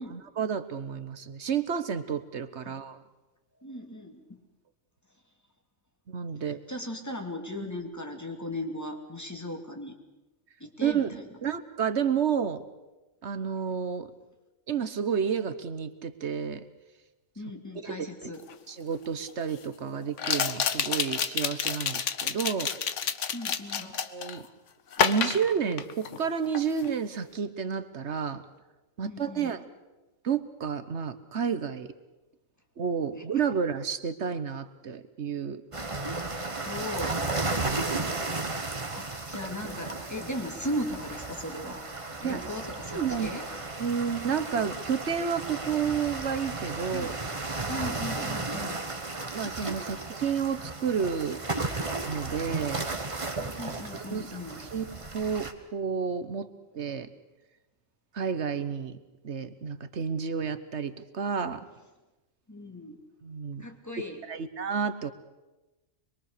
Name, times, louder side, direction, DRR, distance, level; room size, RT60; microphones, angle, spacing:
voice 1, 0.1-3.0 6.1-6.6 10.8-12.6 13.2-14.1 14.7-16.6 17.8-18.3 18.7-22.7 24.1-24.5 25.0-28.4 29.0-29.6 30.2-31.9 32.8-35.6 37.2-38.0 42.2-42.5 42.9-43.3 43.8-47.2 49.3-51.4 52.0-52.9 53.9-56.5 56.7-57.1 58.1-59.0 59.2-61.7 63.2-63.7 64.3-65.1, right 7 dB, 60° right, 12 dB, 1.3 m, -31 dB
voice 2, 3.5-4.4 6.4-10.0 10.6-11.2 17.4-18.4 23.3-24.0 29.0-29.6 33.2-33.4 36.6-37.2 38.8-41.8 42.2-43.5 46.9-47.2 47.7-48.8 53.4-54.6 62.5-63.0 63.6-64.2, left 1 dB, 10° left, 3 dB, 2.5 m, -37 dB
sound 1, 18.5-18.6 20.2-24.4 24.9-26.3 26.5-26.9, left 7 dB, 65° left, 1.3 m, -29 dB
sound 2, 35.7-55.5, right 3 dB, 25° right, 1.4 m, -34 dB
24.5 x 22.5 x 6.7 m, 1.1 s
omnidirectional pair, 1.4 m